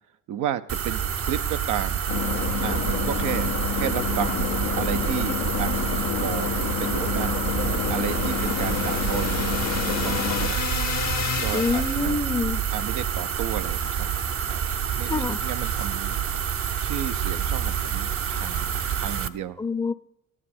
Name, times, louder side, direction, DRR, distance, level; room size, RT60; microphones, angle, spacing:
voice 1, 0.3-2.0 2.6-3.5 3.7-5.7 6.2-7.4 7.9-10.7 11.4-12.2 12.7-14.1 14.5-14.6 15.0-16.2 16.5-19.6, right 10 dB, 85° right, 10 dB, 0.7 m, -33 dB
sound 1, 0.7-19.3, right 8 dB, 50° right, 0.7 m, -28 dB
sound 2, 2.1-10.5, left 8 dB, 90° left, 0.8 m, -29 dB
sound 3, 7.3-12.3, left 8 dB, 65° left, 0.9 m, -33 dB
voice 2, 11.5-12.6 15.1-15.4 19.6-19.9, left 4 dB, 15° left, 13 dB, 0.6 m, -26 dB
13.5 x 9.9 x 4.3 m, 0.81 s
cardioid pair, 90°, 30 cm